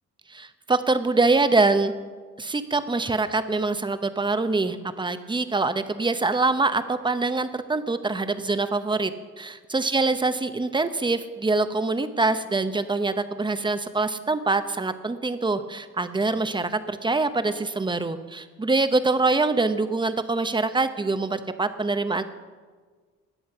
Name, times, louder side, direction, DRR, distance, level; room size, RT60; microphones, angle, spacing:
voice 1, 0.3-1.9 2.4-9.1 9.4-22.2, right 3 dB, 15° right, 10 dB, 0.9 m, -24 dB
20.0 x 7.9 x 5.7 m, 1.5 s
cardioid pair, 90°, 30 cm